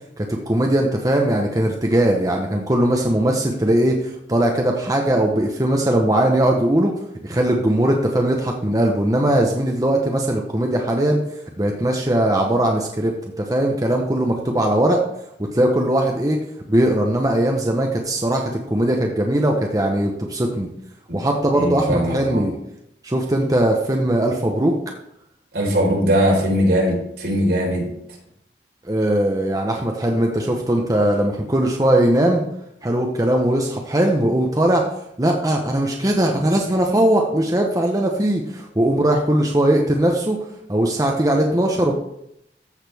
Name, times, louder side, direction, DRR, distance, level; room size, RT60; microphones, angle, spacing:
voice 1, 0.2-6.9 7.2-11.2 11.6-15.0 15.5-16.4 16.7-20.7 21.1-22.5 23.0-24.7 28.8-32.4 32.8-34.8 35.2-40.4 40.7-41.9, right 1 dB, 20° right, 1 dB, 0.8 m, -19 dB
voice 2, 21.5-22.4 25.5-27.9, equal, 70° right, -2 dB, 4.2 m, -20 dB
14.0 x 6.5 x 3.5 m, 0.78 s
head